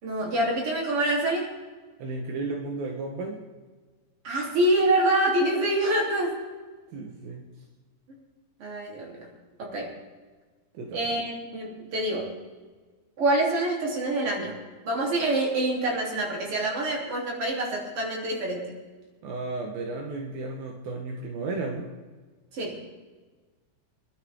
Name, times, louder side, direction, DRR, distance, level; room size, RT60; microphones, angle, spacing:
voice 1, 0.0-1.5 4.2-6.4 8.6-9.3 9.6-9.9 10.9-12.3 13.2-14.6 14.8-18.8 22.5-22.8, right 1 dB, 40° right, -2 dB, 4.1 m, -26 dB
voice 2, 2.0-3.4 6.9-7.5 10.7-11.1 19.2-21.9, right 3 dB, 75° right, 0 dB, 3.1 m, -34 dB
26.0 x 12.0 x 3.7 m, 1.4 s
omnidirectional pair, 4.3 m